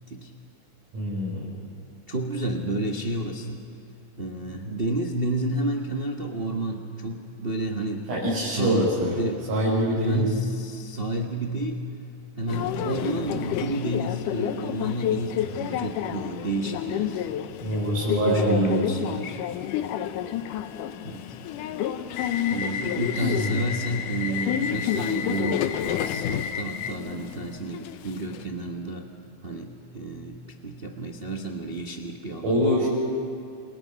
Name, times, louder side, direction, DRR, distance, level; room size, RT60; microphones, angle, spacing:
voice 1, 0.9-1.4 8.1-9.2 9.5-10.2 17.6-18.8 23.1-23.6 32.4-32.9, equal, 80° right, -8 dB, 7.4 m, -24 dB
voice 2, 2.1-3.6 4.2-8.1 8.4-8.9 9.2-11.9 12.4-17.3 18.2-19.4 21.0-21.3 22.4-29.1 29.4-32.6, right 2 dB, 50° right, 1 dB, 0.6 m, -30 dB
Subway metro underground, 12.5-28.4, left 10 dB, 85° left, 2.4 m, -29 dB
28.5 x 28.5 x 5.8 m, 2.5 s
omnidirectional pair, 3.6 m